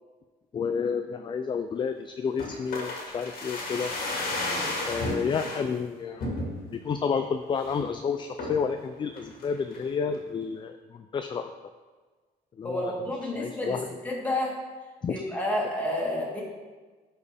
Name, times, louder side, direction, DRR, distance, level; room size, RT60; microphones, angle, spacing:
voice 1, 0.5-3.9 4.9-6.3 6.7-11.5 12.5-12.9 13.4-13.8 15.0-15.2, left 6 dB, 30° left, 7 dB, 0.4 m, -30 dB
sound 1, 2.4-5.6 6.2-6.8 7.2-7.3 7.6-7.9 8.4-8.7 9.2-9.9 10.1-10.2, left 2 dB, 60° left, 2.0 m, -33 dB
voice 2, 4.4-4.7 12.6-13.8 14.0-14.6 15.1-16.4, left 1 dB, 10° left, -4 dB, 2.2 m, -30 dB
11.5 x 4.5 x 3.5 m, 1.4 s
cardioid pair, 110°, 17 cm